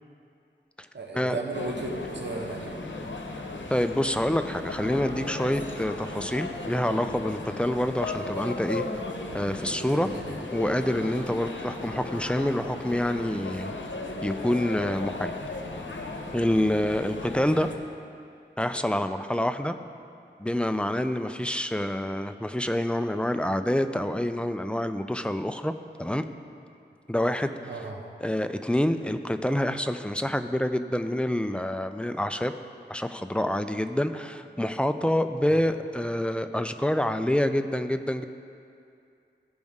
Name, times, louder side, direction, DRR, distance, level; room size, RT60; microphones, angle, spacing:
voice 1, 0.9-2.8 9.9-10.3 27.7-28.0 35.5-35.6, right 2 dB, 70° right, 0 dB, 0.9 m, -35 dB
sound 1, 1.5-17.8, left 2 dB, 85° left, 0.8 m, -36 dB
voice 2, 3.7-8.8 9.3-10.1 10.5-13.7 14.2-15.4 16.3-17.7 18.6-19.7 20.4-25.7 26.0-26.2 27.1-27.5 28.2-32.5 32.9-38.2, left 1 dB, 5° left, 8 dB, 0.4 m, -27 dB
15.0 x 5.3 x 3.6 m, 2.5 s
wide cardioid pair, 50°, 19 cm